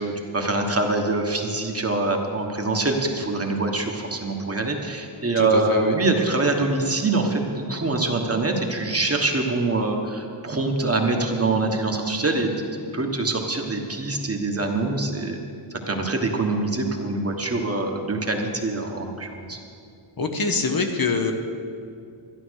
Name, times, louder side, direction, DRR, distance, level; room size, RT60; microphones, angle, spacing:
voice 1, 0.0-15.4 15.9-19.6, right 2 dB, 30° right, 2 dB, 1.3 m, -24 dB
voice 2, 5.4-6.0 20.2-21.3, left 3 dB, 45° left, 4 dB, 1.0 m, -24 dB
12.0 x 11.5 x 6.4 m, 2.5 s
wide cardioid pair, 135°, 49 cm